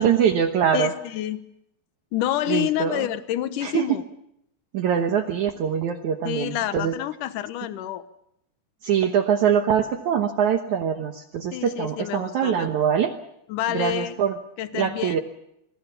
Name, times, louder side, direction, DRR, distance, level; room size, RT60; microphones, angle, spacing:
voice 1, 0.0-0.9 2.5-3.0 3.6-3.9 4.7-6.9 8.8-13.1 13.7-14.3 14.7-15.2, right 8 dB, 80° right, 6 dB, 1.7 m, -23 dB
voice 2, 0.7-1.4 2.1-4.0 6.2-8.0 11.5-12.8 13.5-14.2 14.6-15.2, left 13 dB, 70° left, 12 dB, 2.0 m, -28 dB
26.5 x 20.5 x 6.9 m, 0.79 s
omnidirectional pair, 5.1 m